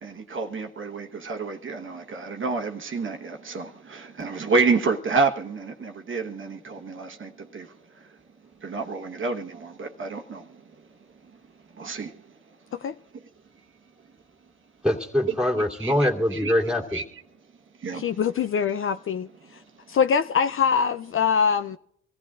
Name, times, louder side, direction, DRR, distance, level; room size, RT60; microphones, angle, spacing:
voice 1, 0.0-8.1 8.6-10.6 11.7-12.3 15.8-16.5 16.9-17.0 17.8-18.2, right 4 dB, 40° right, 1.2 m, -29 dB
voice 2, 14.8-17.0, left 1 dB, 5° right, 2.5 m, -23 dB
voice 3, 17.9-19.3 19.9-21.8, left 6 dB, 45° left, 0.5 m, -23 dB
24.5 x 15.0 x 2.4 m
cardioid pair, 90°, 30 cm